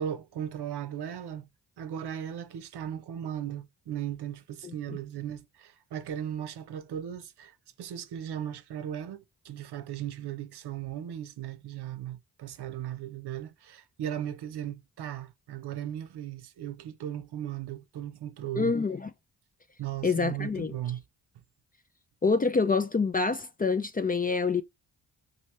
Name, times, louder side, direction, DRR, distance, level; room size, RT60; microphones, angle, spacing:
voice 1, 0.0-1.5 1.8-18.7 19.8-21.0, right 10 dB, 70° right, 0.7 m, -37 dB
voice 2, 4.6-5.0 18.6-19.1 20.0-20.7 22.2-24.6, left 4 dB, 20° left, 0.4 m, -27 dB
2.9 x 2.7 x 3.1 m
cardioid pair, 55°, 41 cm